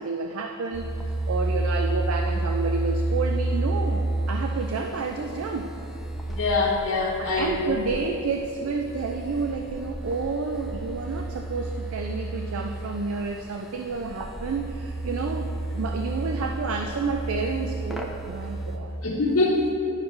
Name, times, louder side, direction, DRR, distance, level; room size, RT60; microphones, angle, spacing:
voice 1, 0.0-5.7 7.2-15.5 15.8-19.0, right 4 dB, 70° right, 4 dB, 0.4 m, -30 dB
sound 1, 0.7-18.8, right 2 dB, ahead, 0.5 m, -31 dB
voice 2, 6.3-7.7 19.0-19.7, left 3 dB, 80° left, -6 dB, 1.0 m, -24 dB
11.0 x 5.7 x 3.2 m, 2.9 s
head